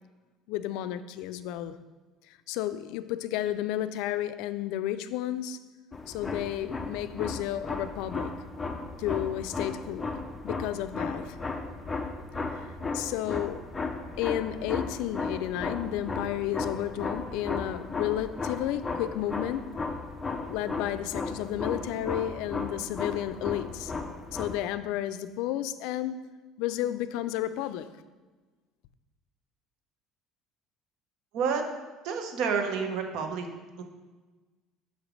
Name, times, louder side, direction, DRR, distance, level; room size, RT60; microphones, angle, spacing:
voice 1, 0.5-1.8 2.3-5.6 6.1-8.3 9.0-10.1 10.4-11.4 12.5-13.6 14.2-19.7 20.5-23.9 24.3-26.3 26.6-27.9, left 12 dB, 80° left, 0.3 m, -32 dB
sound 1, 5.9-24.6, left 3 dB, 15° left, 0.6 m, -35 dB
voice 2, 32.0-33.5 33.8-33.9, right 6 dB, 65° right, 1.0 m, -29 dB
6.4 x 5.0 x 5.2 m
cardioid pair, 145°, 0 cm